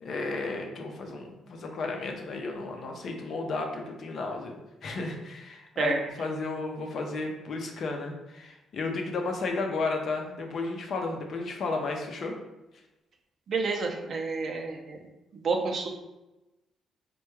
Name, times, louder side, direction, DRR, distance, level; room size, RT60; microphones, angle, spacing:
voice 1, 0.0-4.6 4.8-5.9 6.2-12.4, left 3 dB, 60° left, 2 dB, 0.5 m, -33 dB
voice 2, 13.5-15.9, right 4 dB, 55° right, 2 dB, 0.5 m, -30 dB
3.3 x 2.2 x 3.1 m, 1.0 s
cardioid pair, 90°, 0 cm